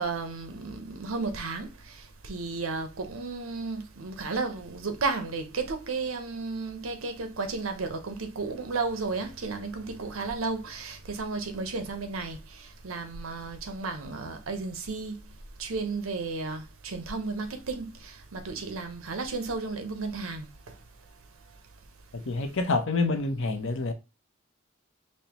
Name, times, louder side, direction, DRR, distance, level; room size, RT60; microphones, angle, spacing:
voice 1, 0.0-1.7 2.2-12.4 12.8-15.2 15.6-20.5, right 4 dB, 70° right, 0.7 m, -33 dB
voice 2, 22.1-23.9, left 3 dB, 65° left, 0.7 m, -27 dB
5.3 x 2.1 x 2.9 m
head